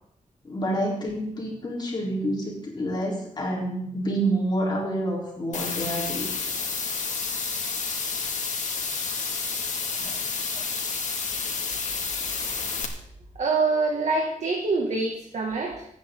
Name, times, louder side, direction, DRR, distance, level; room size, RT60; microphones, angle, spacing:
voice 1, 0.4-6.3 10.0-10.2 12.3-12.4, right 1 dB, 35° left, -3 dB, 4.1 m, -28 dB
sound 1, 5.5-12.8, left 5 dB, 70° left, 2.3 m, -30 dB
voice 2, 13.4-15.9, right 3 dB, 60° right, -1 dB, 2.2 m, -25 dB
27.0 x 9.4 x 3.9 m, 0.73 s
wide cardioid pair, 170°, 13 cm